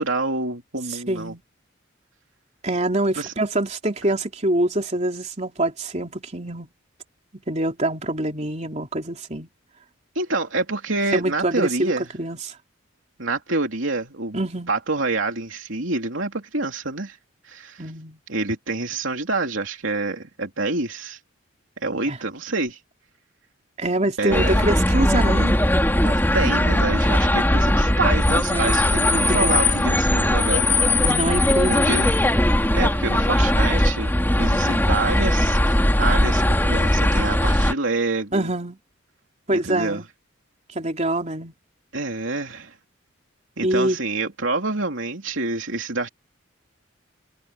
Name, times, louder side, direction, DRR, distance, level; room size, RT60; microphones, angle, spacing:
voice 1, 0.0-1.3 3.2-3.3 10.1-12.1 13.2-14.4 14.7-17.2 17.4-17.8 18.3-21.2 21.8-22.8 24.2-24.6 26.0-30.7 31.7-32.3 32.7-38.5 39.5-40.0 41.9-42.8 43.6-46.1, right 3 dB, 70° right, 3.1 m, -27 dB
voice 2, 1.1-1.4 2.6-6.7 7.3-9.5 11.1-12.5 14.3-14.7 17.8-18.2 22.1-22.2 23.8-25.6 28.5-29.6 31.0-32.1 38.3-38.8 39.5-40.1 40.8-41.5 43.6-44.0, right 1 dB, 35° right, 3.5 m, -25 dB
sound 1, 24.3-37.7, left 1 dB, 10° left, 2.9 m, -19 dB
head